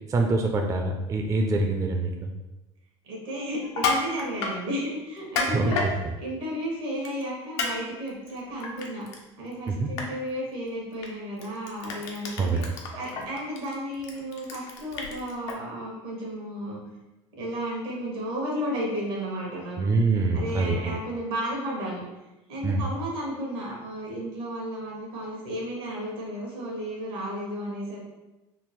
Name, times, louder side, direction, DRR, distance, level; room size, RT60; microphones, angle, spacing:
voice 1, 0.1-2.3 5.5-5.9 9.7-9.9 12.4-12.7 19.8-21.0 22.6-22.9, right 3 dB, 25° right, 3 dB, 0.4 m, -25 dB
voice 2, 3.0-5.8 6.2-9.1 9.4-12.6 12.9-16.8 17.3-19.8 20.3-22.0 22.5-28.0, equal, 80° right, -2 dB, 1.2 m, -33 dB
Crushing, 3.6-4.6 5.2-5.9 7.0-7.2 7.6-7.7 8.1-9.2 9.5-9.7 10.0-10.1 11.0-11.1 11.4-15.5, left 4 dB, 85° left, 0.6 m, -30 dB
3.6 x 2.1 x 3.0 m, 1.0 s
supercardioid pair, 85°, 14 cm